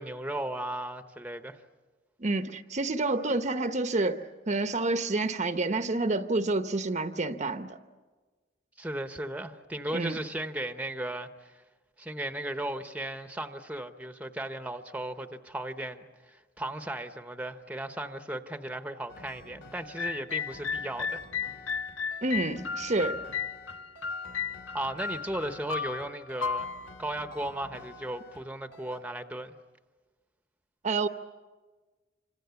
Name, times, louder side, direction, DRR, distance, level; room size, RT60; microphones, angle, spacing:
voice 1, 0.0-1.6 8.8-11.5 12.0-21.2 24.7-26.7 27.0-29.5, right 1 dB, 5° right, 0.9 m, -36 dB
voice 2, 2.2-7.8 9.9-10.2 22.2-23.2 30.8-31.1, right 2 dB, 40° right, 0.8 m, -29 dB
sound 1, 19.1-28.5 28.7-29.0, left 1 dB, 70° left, 3.2 m, -50 dB
sound 2, 20.0-28.0, left 6 dB, 90° left, 0.9 m, -35 dB
28.0 x 25.5 x 7.0 m
head